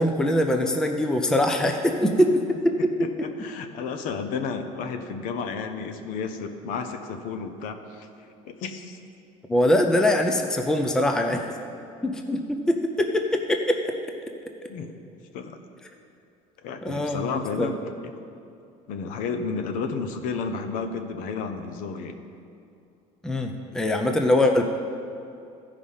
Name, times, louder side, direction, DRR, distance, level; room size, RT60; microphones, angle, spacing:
voice 1, 0.0-2.9 9.5-11.4 12.0-13.9 16.8-17.7 23.2-24.6, left 1 dB, 5° left, 4 dB, 0.5 m, -23 dB
voice 2, 3.0-8.1 8.4-9.0 14.7-14.9 15.3-15.5 16.6-17.8 18.9-22.2, left 5 dB, 65° left, 7 dB, 0.8 m, -32 dB
14.0 x 5.0 x 5.6 m, 2.6 s
cardioid pair, 155°, 15 cm